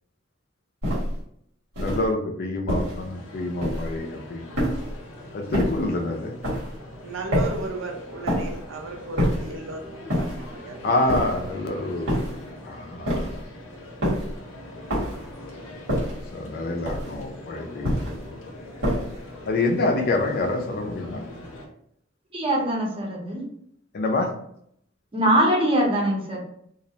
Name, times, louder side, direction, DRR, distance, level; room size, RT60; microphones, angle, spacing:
sound 1, 0.8-1.2 1.7-2.1 2.7-3.1 3.6-4.0 4.5-5.0 5.5-5.9 6.4-6.8 7.3-7.7 8.3-8.6 9.2-9.6 10.1-10.5 11.1-11.5 12.1-12.5 13.1-13.5 14.0-14.4 14.9-15.3 15.9-16.3 16.9-17.3 17.8-18.3 18.8-19.2, equal, 85° right, 1.2 m, -26 dB
voice 1, 1.8-4.4 5.3-6.3 10.8-12.3 12.6-13.4 15.3-15.4 16.3-18.0 18.3-18.5 19.5-21.3 23.9-24.3, left 2 dB, 50° left, 3 dB, 0.4 m, -27 dB
sound 2, 2.7-21.7, left 1 dB, 90° left, 0.6 m, -42 dB
voice 2, 7.0-9.8 10.1-11.0, right 2 dB, 70° right, 2 dB, 0.5 m, -35 dB
voice 3, 22.3-23.4 25.1-26.4, right 1 dB, 30° right, -2 dB, 0.7 m, -22 dB
2.4 x 2.0 x 2.7 m, 0.70 s
head